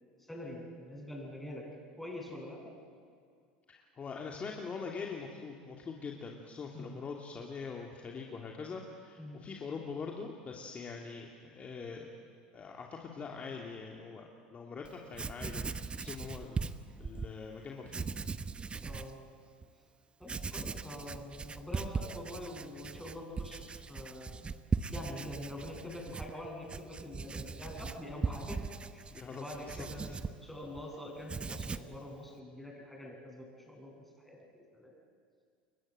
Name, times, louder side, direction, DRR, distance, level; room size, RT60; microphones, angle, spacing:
voice 1, 0.2-2.7 6.7-7.1 9.2-9.5 18.8-19.2 20.2-24.3 24.9-34.9, left 1 dB, 5° left, -1 dB, 7.8 m, -45 dB
voice 2, 3.7-12.1 12.5-15.7 16.0-16.6 17.0-18.1 29.1-29.9, left 5 dB, 30° left, 0 dB, 2.7 m, -43 dB
Writing, 14.8-14.9 15.1-17.3 17.9-19.1 19.6-19.7 20.2-30.9 31.2-32.0, right 5 dB, 20° right, 1.0 m, -39 dB
30.0 x 22.0 x 7.9 m, 2.2 s
hypercardioid pair, 80°, 5 cm